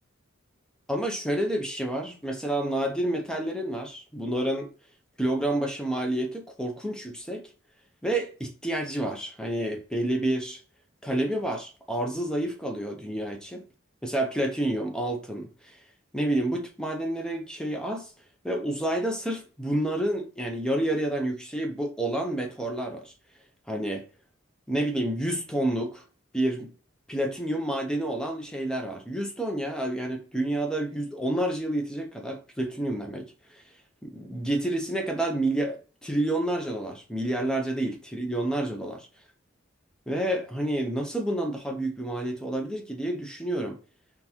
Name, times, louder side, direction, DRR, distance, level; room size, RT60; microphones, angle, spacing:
voice 1, 0.9-4.7 5.2-7.5 8.0-10.6 11.0-13.6 14.0-15.8 16.1-18.1 18.4-23.1 23.7-24.1 24.7-26.0 26.3-26.7 27.1-33.6 34.0-39.0 40.1-43.8, right 1 dB, 5° left, 0.7 m, -29 dB
3.9 x 3.5 x 2.8 m
head